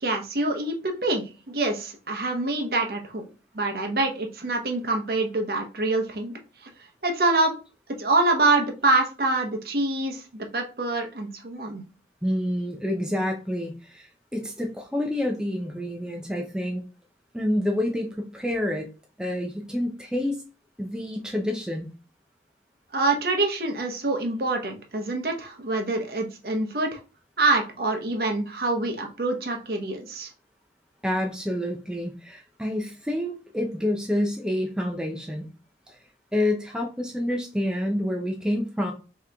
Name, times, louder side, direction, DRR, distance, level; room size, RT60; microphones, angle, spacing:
voice 1, 0.0-3.2 3.5-6.3 7.0-7.6 8.0-11.8 22.9-27.0 27.4-30.3, right 2 dB, 55° right, 3 dB, 0.8 m, -25 dB
voice 2, 12.2-16.8 17.3-18.9 19.2-20.4 20.8-21.9 31.0-35.5 35.9-36.0 36.3-38.9, left 1 dB, 5° right, 1 dB, 0.4 m, -28 dB
3.7 x 2.9 x 3.3 m, 0.34 s
head